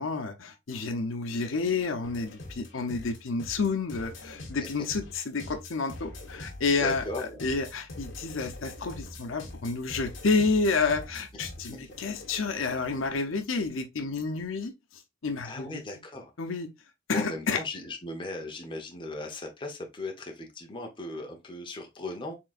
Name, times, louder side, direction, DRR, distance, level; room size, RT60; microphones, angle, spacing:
voice 1, 0.0-15.8 16.4-16.7 17.1-17.6, left 4 dB, 90° left, 0.7 m, -30 dB
sound 1, 2.0-13.1, left 2 dB, 70° left, 1.3 m, -44 dB
voice 2, 6.7-7.4 15.4-16.3 17.1-22.3, left 2 dB, 25° left, 0.9 m, -37 dB
4.5 x 3.8 x 2.5 m
head